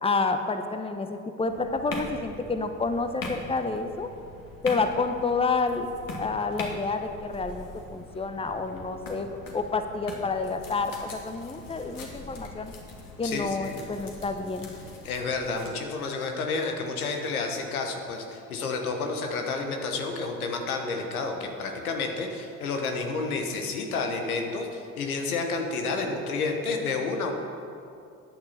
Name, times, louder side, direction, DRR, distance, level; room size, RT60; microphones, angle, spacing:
voice 1, 0.0-4.1 4.6-5.9 6.2-9.3 9.5-12.7 13.2-14.7, left 4 dB, 15° left, 7 dB, 0.9 m, -29 dB
sound 1, 1.5-15.7, left 2 dB, 50° left, 2.3 m, -42 dB
voice 2, 13.2-13.9 15.0-27.3, left 4 dB, 90° left, 3 dB, 1.2 m, -30 dB
13.5 x 9.2 x 4.2 m, 2.5 s
hypercardioid pair, 60°, 42 cm